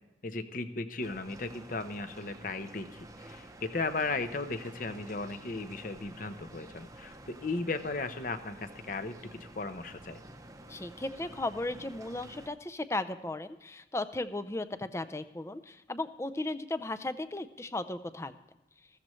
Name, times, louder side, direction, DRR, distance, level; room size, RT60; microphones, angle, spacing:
voice 1, 0.2-10.2, left 3 dB, 45° left, 10 dB, 0.8 m, -36 dB
sound 1, 1.0-12.5, right 1 dB, 20° right, 0.8 m, -50 dB
voice 2, 10.7-18.3, left 2 dB, 15° left, 12 dB, 0.5 m, -36 dB
15.0 x 14.0 x 3.1 m, 0.98 s
head